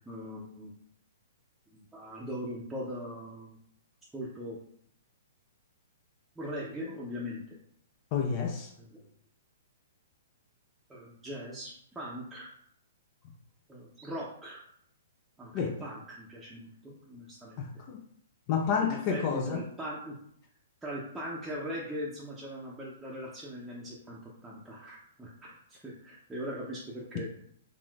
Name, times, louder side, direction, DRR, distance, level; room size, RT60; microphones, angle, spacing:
voice 1, 0.1-0.7 1.7-3.6 4.1-4.6 6.4-7.6 8.8-9.1 10.9-12.5 13.7-14.6 15.4-17.6 18.8-20.2 20.8-27.5, equal, 10° right, -7 dB, 0.6 m, -40 dB
voice 2, 8.1-8.7 15.5-15.7 17.6-18.0 18.5-19.6, left 6 dB, 40° left, 3 dB, 0.4 m, -29 dB
3.5 x 2.4 x 2.3 m, 0.66 s
hypercardioid pair, 120°, 0 cm